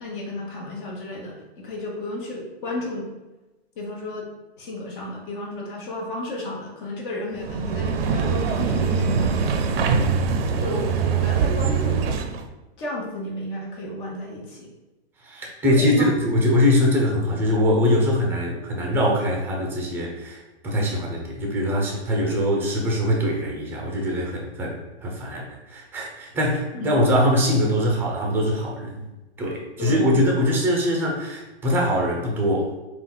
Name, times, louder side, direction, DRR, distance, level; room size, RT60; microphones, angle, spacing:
voice 1, 0.0-3.1 3.8-4.3 4.6-9.3 10.6-10.9 11.2-12.0 12.8-14.7 15.6-16.1 26.7-26.9 29.8-30.2, left 2 dB, 50° left, -2 dB, 1.2 m, -33 dB
sound 1, 7.4-12.4, right 5 dB, 60° right, 0.5 m, -23 dB
voice 2, 9.8-10.1 15.2-29.0 29.4-32.7, left 1 dB, 5° right, -1 dB, 0.5 m, -22 dB
3.9 x 2.4 x 3.9 m, 1.1 s
hypercardioid pair, 135°, 33 cm